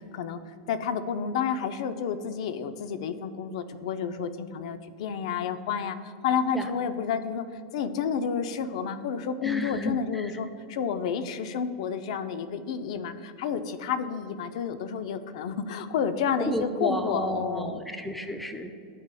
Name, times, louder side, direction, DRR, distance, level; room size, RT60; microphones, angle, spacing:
voice 1, 0.7-7.4 7.7-17.8, left 7 dB, 65° left, 11 dB, 0.4 m, -30 dB
voice 2, 9.4-10.3 16.5-18.7, equal, ahead, 6 dB, 0.4 m, -32 dB
12.5 x 4.8 x 2.2 m, 2.5 s
supercardioid pair, 145°, 4 cm